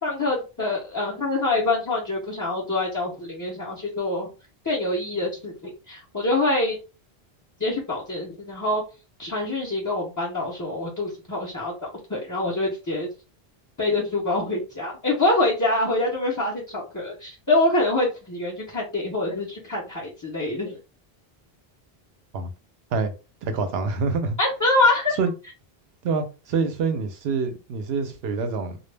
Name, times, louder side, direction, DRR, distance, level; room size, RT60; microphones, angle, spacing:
voice 1, 0.0-4.3 4.6-6.8 7.6-8.8 9.2-11.7 12.1-13.1 13.8-20.8 24.4-25.2, left 2 dB, 25° left, 0.4 m, -25 dB
voice 2, 23.4-24.4 25.2-25.3 26.0-28.8, right 4 dB, 80° right, 0.8 m, -26 dB
2.2 x 2.0 x 3.2 m
omnidirectional pair, 1.0 m